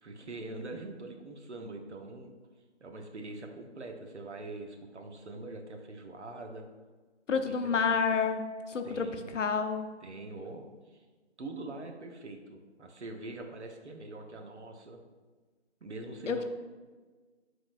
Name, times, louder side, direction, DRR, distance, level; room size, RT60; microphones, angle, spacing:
voice 1, 0.0-2.3 2.8-6.7 7.3-8.0 8.8-9.4 10.0-11.0 11.4-15.0 15.8-16.4, right 2 dB, 70° right, 3 dB, 0.8 m, -43 dB
voice 2, 7.3-9.1 9.3-9.9 16.3-16.4, left 5 dB, 85° left, 7 dB, 0.6 m, -29 dB
5.0 x 3.9 x 2.5 m, 1.3 s
figure-of-eight pair, 180°, 36 cm